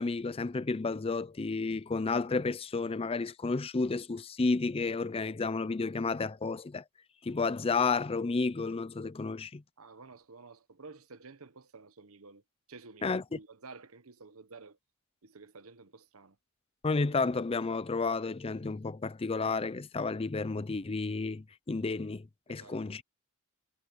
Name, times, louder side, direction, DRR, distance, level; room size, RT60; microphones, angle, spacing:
voice 1, 0.0-6.8 7.2-9.6 13.0-13.4 16.8-23.0, left 4 dB, 25° left, 0.5 m, -31 dB
voice 2, 9.8-12.4 12.7-14.8 15.2-16.4 22.5-23.0, right 4 dB, 75° right, 1.0 m, -52 dB
head